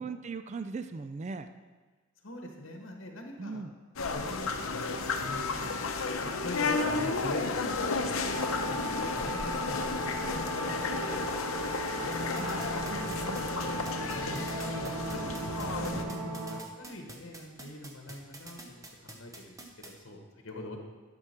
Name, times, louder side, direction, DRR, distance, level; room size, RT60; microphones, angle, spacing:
voice 1, 0.0-1.5 3.4-3.7 12.0-12.1 12.4-13.5, right 4 dB, 35° right, 9 dB, 0.3 m, -39 dB
voice 2, 2.2-3.6 4.1-5.8 6.2-9.8 10.2-12.1 12.9-13.0 13.3-13.6 14.1-20.8, left 1 dB, 65° left, 2 dB, 1.2 m, -43 dB
sound 1, 4.0-16.0, left 4 dB, 80° left, 0.8 m, -33 dB
sound 2, 8.3-16.6, right 1 dB, 80° right, 0.9 m, -37 dB
sound 3, 12.1-19.9, right 2 dB, 15° right, 0.8 m, -46 dB
11.0 x 6.1 x 4.4 m, 1.3 s
head